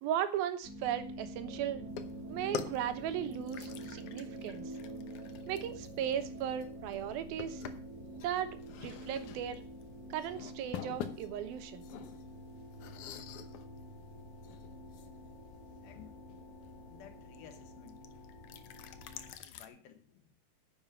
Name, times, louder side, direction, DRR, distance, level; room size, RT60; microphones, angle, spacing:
voice 1, 0.0-1.9 2.3-4.6 5.5-7.6 8.2-9.6 10.1-11.9, right 10 dB, 90° right, 2.9 m, -37 dB
sound 1, 0.6-19.3, equal, 40° left, 2.7 m, -48 dB
sound 2, 1.4-17.8, right 5 dB, 60° right, 1.0 m, -53 dB
sound 3, 1.9-19.7, left 9 dB, 70° left, 2.0 m, -48 dB
voice 2, 15.8-16.2 16.9-18.0 19.4-20.4, left 8 dB, 90° left, 3.1 m, -56 dB
10.0 x 7.4 x 7.0 m
omnidirectional pair, 4.2 m